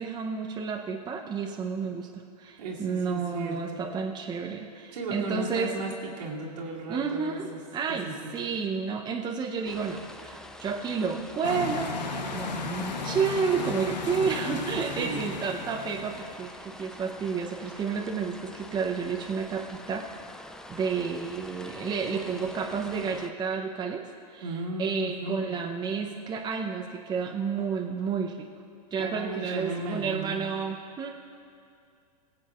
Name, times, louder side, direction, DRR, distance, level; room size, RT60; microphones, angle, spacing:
voice 1, 0.0-5.7 6.9-8.1 8.3-20.1 20.7-24.5 24.8-28.5 28.9-31.1, right 5 dB, 20° right, 1 dB, 0.7 m, -31 dB
voice 2, 2.6-3.8 4.9-7.6 7.9-8.3 15.0-15.3 24.4-25.6 28.9-30.5, right 2 dB, 75° right, -3 dB, 2.3 m, -35 dB
sound 1, 9.6-23.3, left 1 dB, 5° left, 0.3 m, -46 dB
sound 2, 11.4-16.5, left 3 dB, 90° left, 1.0 m, -35 dB
22.0 x 7.7 x 2.5 m, 2.4 s
hypercardioid pair, 110°, 21 cm